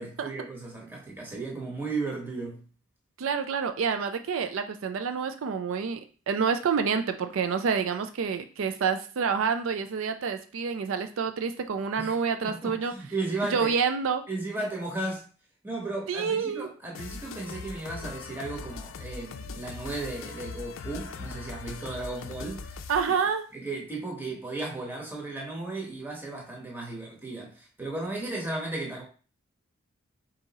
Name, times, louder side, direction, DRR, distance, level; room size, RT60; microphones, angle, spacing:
voice 1, 0.0-2.6 12.0-13.8 14.3-15.2 15.6-22.8 23.5-29.0, right 2 dB, 10° right, 1.0 m, -35 dB
voice 2, 3.2-6.0 6.3-12.9 13.5-14.2 16.1-16.7 22.9-23.4, right 6 dB, 85° right, 0.4 m, -28 dB
sound 1, 16.9-23.2, left 4 dB, 80° left, 0.4 m, -40 dB
3.7 x 2.8 x 4.0 m
head